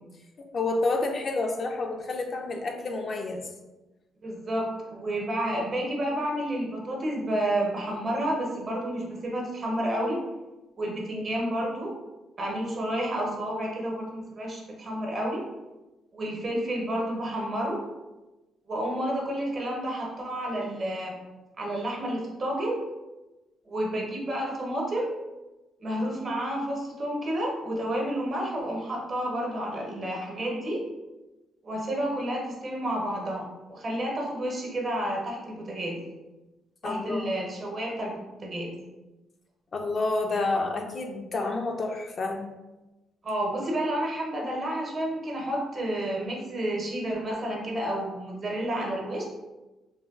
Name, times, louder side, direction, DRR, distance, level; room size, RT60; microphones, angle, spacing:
voice 1, 0.4-3.5 36.8-37.4 39.7-42.4, left 3 dB, 45° left, 3 dB, 0.4 m, -29 dB
voice 2, 4.2-10.2 10.8-11.9 12.4-15.4 16.1-17.8 18.7-21.2 21.6-22.8 23.7-25.1 25.8-30.8 31.6-36.0 36.8-38.8 43.2-49.2, right 1 dB, 45° right, -1 dB, 0.8 m, -30 dB
3.2 x 2.2 x 2.3 m, 1.1 s
cardioid pair, 90°, 0 cm